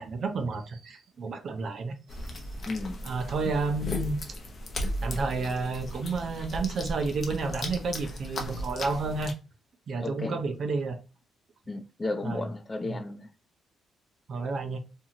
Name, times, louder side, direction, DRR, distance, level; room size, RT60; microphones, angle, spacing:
voice 1, 0.0-1.9 2.2-2.4 3.0-4.2 5.0-9.3 9.9-11.0 12.2-12.5 12.8-13.0 14.3-14.8, right 3 dB, 55° right, 0.6 m, -31 dB
sound 1, 2.1-9.3, left 1 dB, 45° left, 0.7 m, -36 dB
voice 2, 2.7-3.0 10.0-10.4 11.7-13.3, left 2 dB, 25° left, 0.4 m, -33 dB
2.7 x 2.4 x 2.8 m
cardioid pair, 90°, 0 cm